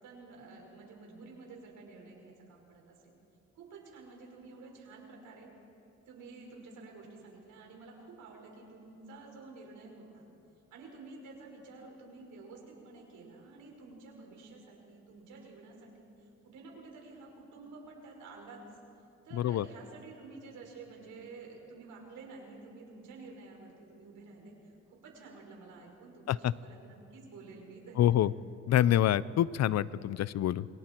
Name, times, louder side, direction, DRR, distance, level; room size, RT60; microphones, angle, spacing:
voice 1, 0.0-3.2 3.6-5.5 6.1-10.3 10.7-18.8 19.2-24.6 24.9-28.3, right 3 dB, 80° right, 0 dB, 5.3 m, -50 dB
voice 2, 19.3-19.6 26.3-26.5 28.0-28.3 28.7-30.7, left 12 dB, 60° left, 19 dB, 0.6 m, -26 dB
28.0 x 24.0 x 4.5 m, 2.7 s
cardioid pair, 90°, 30 cm